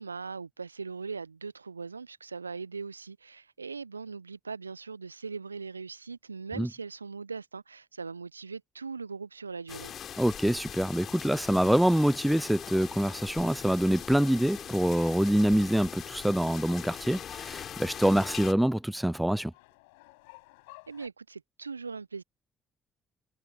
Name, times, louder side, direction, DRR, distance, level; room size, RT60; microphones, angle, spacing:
voice 1, 0.0-9.9 20.9-22.2, right 4 dB, 85° right, 0.8 m, -40 dB
sound 1, 9.7-18.5, left 9 dB, 50° left, 4.2 m, -41 dB
voice 2, 10.2-19.5, right 1 dB, 5° right, 0.3 m, -25 dB
sound 2, 12.3-21.1, left 26 dB, 70° left, 5.9 m, -58 dB
figure-of-eight pair, 45°, 0 cm